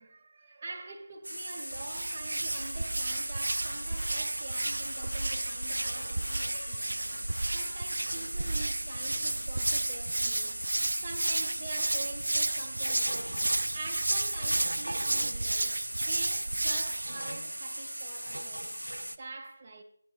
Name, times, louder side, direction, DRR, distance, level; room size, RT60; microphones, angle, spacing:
voice 1, 0.0-7.1 7.5-10.6 11.0-18.7 19.2-19.8, right 3 dB, 25° right, 2.4 m, -45 dB
sound 1, 1.2-19.2, right 1 dB, 85° right, 1.1 m, -39 dB
Hands, 1.7-17.2, right 2 dB, 65° right, 0.6 m, -32 dB
sound 2, 2.5-8.4, left 3 dB, 40° left, 1.7 m, -53 dB
24.0 x 10.5 x 2.6 m
figure-of-eight pair, 160°, 0 cm